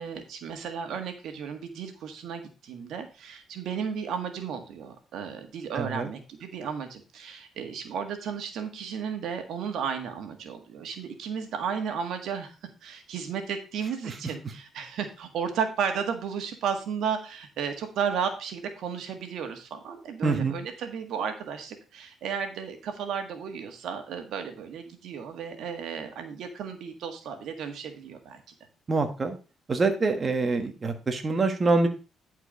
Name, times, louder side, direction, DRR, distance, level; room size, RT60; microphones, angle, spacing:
voice 1, 0.0-12.5 12.8-28.4, right 7 dB, 75° right, 6 dB, 1.7 m, -34 dB
voice 2, 5.7-6.1 14.1-14.2 20.2-20.6 28.9-29.4 29.7-31.9, right 3 dB, 35° right, 5 dB, 1.4 m, -25 dB
11.0 x 4.6 x 5.2 m, 0.34 s
cardioid pair, 90°, 0 cm